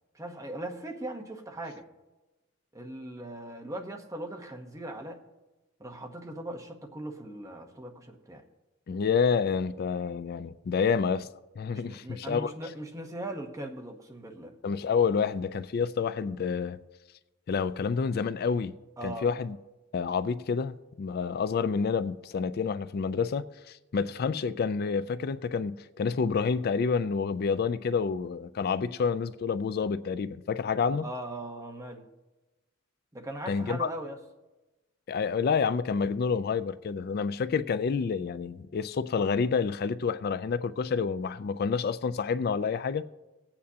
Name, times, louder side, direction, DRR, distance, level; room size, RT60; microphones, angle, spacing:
voice 1, 0.1-1.9 2.7-5.2 5.8-8.4 11.7-14.6 19.0-19.3 31.0-32.1 33.1-34.2, right 1 dB, 15° right, 1.0 m, -39 dB
voice 2, 8.9-11.3 11.6-12.5 14.6-16.8 17.5-18.8 19.0-19.6 19.9-31.0 33.5-33.9 35.1-43.0, left 5 dB, 50° left, 0.3 m, -28 dB
20.0 x 8.6 x 2.8 m
head